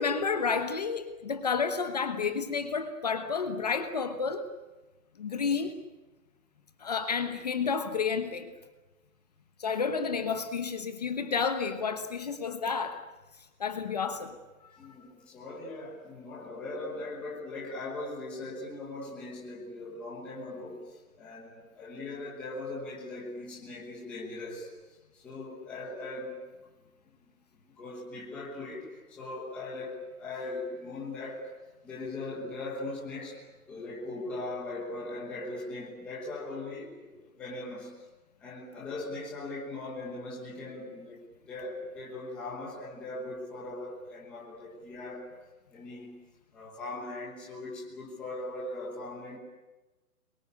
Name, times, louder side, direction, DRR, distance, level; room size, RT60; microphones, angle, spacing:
voice 1, 0.0-4.5 5.2-5.8 6.8-8.5 9.6-13.0 13.6-14.3 14.6-14.7, left 5 dB, 30° left, 8 dB, 1.2 m, -30 dB
voice 2, 14.8-26.4 27.2-27.3 27.6-31.5 31.8-33.4 33.7-38.0 38.4-41.2 41.5-45.3 45.7-46.2 46.5-49.4, left 2 dB, 5° left, -5 dB, 1.2 m, -40 dB
26.0 x 22.5 x 8.3 m, 1.1 s
hypercardioid pair, 180°, 43 cm